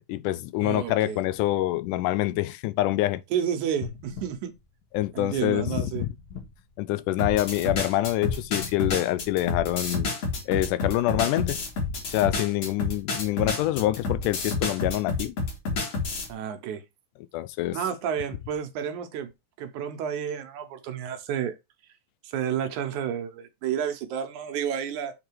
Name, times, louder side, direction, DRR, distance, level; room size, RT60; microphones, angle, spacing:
voice 1, 0.1-3.2 4.9-6.1 6.8-10.1 10.5-11.6 12.1-15.4 17.3-17.8, left 15 dB, 85° left, 2.1 m, -26 dB
voice 2, 0.6-1.2 3.3-4.5 5.1-6.1 16.3-16.8 17.7-19.3 19.6-21.6 22.2-25.1, right 8 dB, 75° right, 2.3 m, -30 dB
sound 1, 3.8-5.4 5.9-7.5 8.2-9.9 10.4-10.5, left 6 dB, 70° left, 3.3 m, -42 dB
sound 2, 7.2-16.3, left 3 dB, 55° left, 3.2 m, -29 dB
7.5 x 4.0 x 4.5 m
omnidirectional pair, 3.6 m